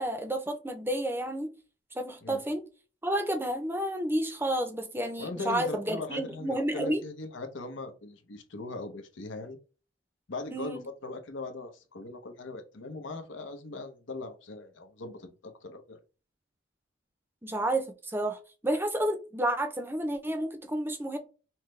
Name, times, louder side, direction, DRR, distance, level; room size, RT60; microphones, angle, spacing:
voice 1, 0.0-1.5 1.9-2.6 3.0-7.0 10.5-10.8 17.4-21.2, right 1 dB, 10° right, 0.6 m, -30 dB
voice 2, 5.2-9.6 10.3-16.0, left 2 dB, 85° left, 0.8 m, -40 dB
5.7 x 2.2 x 3.2 m
head